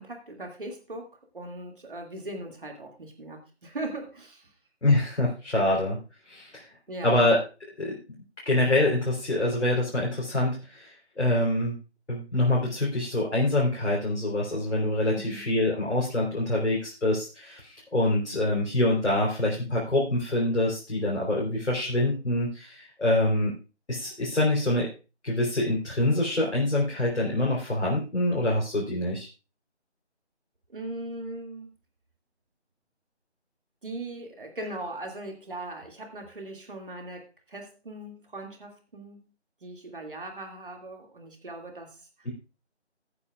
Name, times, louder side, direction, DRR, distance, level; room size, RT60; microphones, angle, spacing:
voice 1, 0.0-4.5 6.9-7.3 15.1-15.5 30.7-31.8 33.8-39.2 39.6-42.3, right 2 dB, 50° right, 3 dB, 2.4 m, -39 dB
voice 2, 4.8-6.0 6.3-6.6 7.0-7.4 7.8-8.0 8.5-11.8 12.1-23.6 23.9-24.9 25.2-29.3 42.2-42.3, left 1 dB, 80° left, -3 dB, 3.8 m, -25 dB
18.5 x 8.7 x 2.4 m, 0.31 s
figure-of-eight pair, 170°, 35 cm